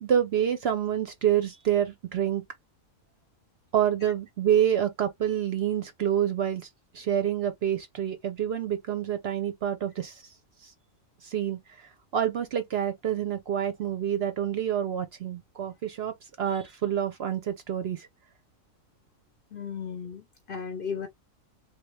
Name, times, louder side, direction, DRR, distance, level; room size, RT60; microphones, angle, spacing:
voice 1, 0.0-2.4 3.7-6.6 6.9-10.2 10.6-10.7 11.2-18.1, right 10 dB, 60° right, 0.7 m, -27 dB
voice 2, 19.5-21.1, left 6 dB, 50° left, 0.7 m, -35 dB
3.5 x 2.2 x 3.0 m
omnidirectional pair, 1.4 m